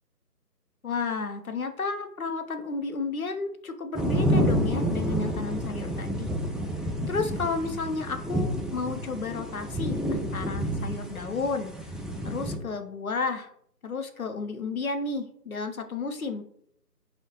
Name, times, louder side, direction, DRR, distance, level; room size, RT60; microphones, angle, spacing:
voice 1, 0.8-6.3 7.1-11.7 12.2-13.5 13.8-16.4, left 4 dB, 60° left, 7 dB, 0.5 m, -32 dB
sound 1, 3.9-12.6, equal, ahead, 0.3 m, -29 dB
4.8 x 2.1 x 3.0 m, 0.68 s
figure-of-eight pair, 175°, 49 cm